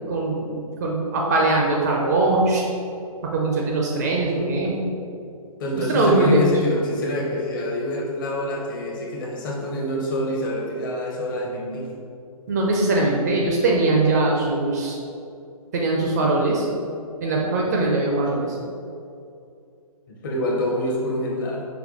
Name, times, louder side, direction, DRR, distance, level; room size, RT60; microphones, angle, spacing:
voice 1, 0.1-2.6 3.2-4.9 5.8-6.5 12.5-15.0 15.7-16.7 17.2-18.6, right 2 dB, 30° right, -2 dB, 0.4 m, -21 dB
voice 2, 5.6-11.9 20.1-21.7, left 1 dB, 35° left, -2 dB, 0.8 m, -26 dB
5.2 x 2.3 x 3.7 m, 2.5 s
figure-of-eight pair, 135°, 19 cm